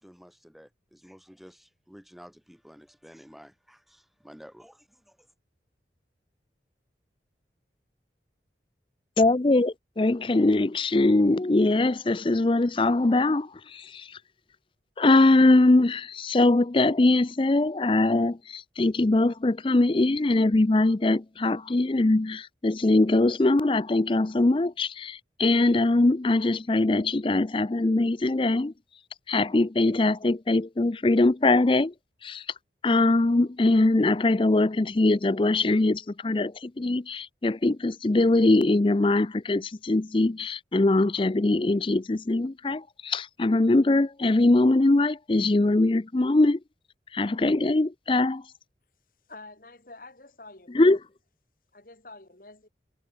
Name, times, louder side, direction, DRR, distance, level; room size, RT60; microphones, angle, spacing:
voice 1, 0.0-5.3, equal, ahead, 1.8 m, -51 dB
voice 2, 9.2-14.2 15.0-28.7 29.3-31.9 32.2-32.4 32.8-46.6 47.1-48.4 50.7-51.0, left 2 dB, 30° left, 0.5 m, -22 dB
voice 3, 49.3-50.9 51.7-52.7, left 2 dB, 50° left, 2.2 m, -47 dB
head